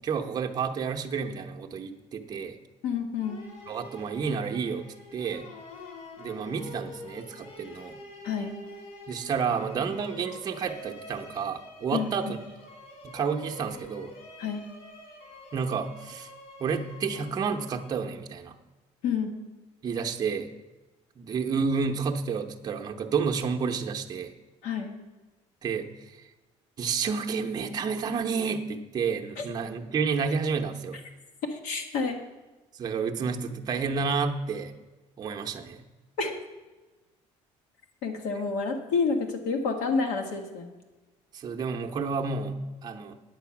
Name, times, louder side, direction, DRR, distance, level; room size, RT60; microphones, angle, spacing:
voice 1, 0.0-2.6 3.7-4.8 5.1-5.5 6.2-8.0 9.1-12.2 13.0-14.1 15.5-16.3 16.6-18.6 19.8-20.5 21.2-24.3 25.6-26.2 26.8-31.0 32.8-34.8 35.2-35.8 41.3-43.1, right 5 dB, 30° right, 3 dB, 0.7 m, -30 dB
voice 2, 2.8-3.4 8.2-8.5 11.9-12.3 14.4-14.6 19.0-19.3 24.6-24.9 29.4-29.5 31.5-32.2 36.2-36.3 38.0-40.7, left 5 dB, 80° left, 4 dB, 1.7 m, -29 dB
sound 1, 3.2-18.3, left 2 dB, 60° left, 3.0 m, -47 dB
9.3 x 7.8 x 5.8 m, 1.2 s
cardioid pair, 145°, 13 cm